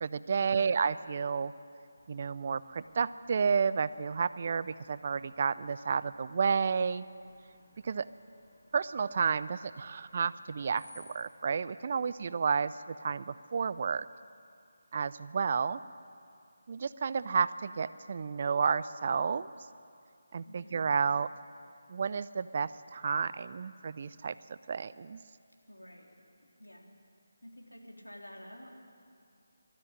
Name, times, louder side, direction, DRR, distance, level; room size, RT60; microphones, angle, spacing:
voice 1, 0.0-1.5 2.1-7.0 7.8-8.1 8.7-14.1 14.9-15.8 16.7-19.5 20.3-21.3 21.9-25.2, right 5 dB, 40° right, 16 dB, 0.5 m, -31 dB
Screech, 2.0-11.3, left 2 dB, 55° left, 7.2 m, -62 dB
voice 2, 20.5-20.8 25.7-26.1 26.4-26.9 27.4-28.7, equal, 90° left, 0 dB, 3.7 m, -50 dB
19.5 x 13.5 x 10.0 m, 2.4 s
figure-of-eight pair, 155°, 0 cm